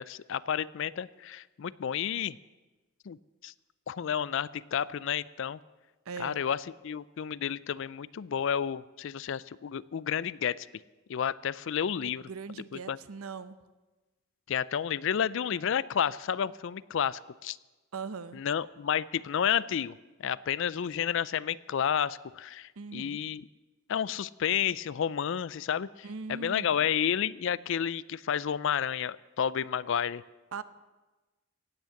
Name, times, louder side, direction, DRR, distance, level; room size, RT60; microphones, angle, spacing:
voice 1, 0.0-2.4 3.1-3.2 3.4-3.5 3.9-5.6 6.2-6.6 6.8-10.7 11.1-12.2 12.9-13.0 14.5-17.6 18.3-23.4 23.9-30.2, left 8 dB, 60° left, 20 dB, 0.4 m, -31 dB
voice 2, 6.1-6.4 12.0-13.6 17.9-18.4 22.8-23.2 26.0-26.9 30.5-30.6, right 5 dB, 85° right, 14 dB, 0.7 m, -40 dB
16.0 x 9.1 x 7.0 m, 1.2 s
head